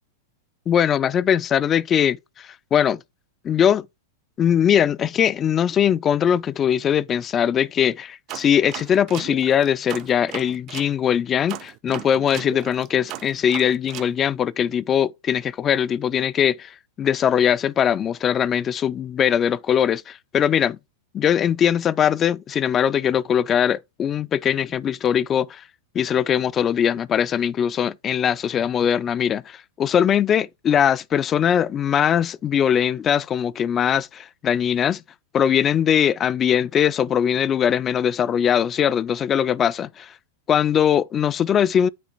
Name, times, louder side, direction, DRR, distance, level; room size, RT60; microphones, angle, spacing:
voice 1, 0.7-3.0 3.4-3.9 4.4-20.8 21.1-25.6 25.9-35.0 35.3-40.1 40.5-41.9, left 9 dB, 30° left, 0.3 m, -21 dB
sound 1, 8.3-10.9 11.5-14.1, right 13 dB, 40° right, 0.5 m, -36 dB
8.5 x 2.9 x 4.0 m
hypercardioid pair, 100°, 0 cm